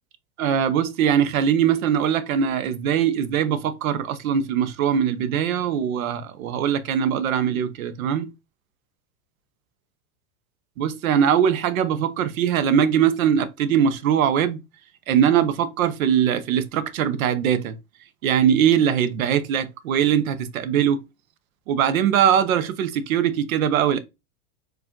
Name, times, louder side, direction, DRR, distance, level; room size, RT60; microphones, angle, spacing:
voice 1, 0.4-8.3 10.8-14.6 15.1-17.8 18.2-21.0 21.7-24.0, right 8 dB, 85° right, 0.8 m, -21 dB
4.7 x 2.5 x 3.7 m
supercardioid pair, 150°, 40 cm